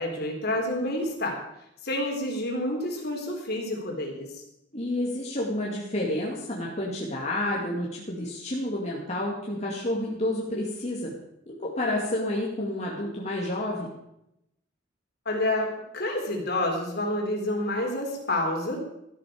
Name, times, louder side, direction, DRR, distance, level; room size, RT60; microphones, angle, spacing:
voice 1, 0.0-1.4 1.8-4.4 15.3-18.8, left 1 dB, 55° left, 1 dB, 3.5 m, -29 dB
voice 2, 4.7-11.1 11.5-13.9, left 1 dB, 35° left, -3 dB, 2.2 m, -30 dB
14.0 x 12.0 x 5.1 m, 0.82 s
head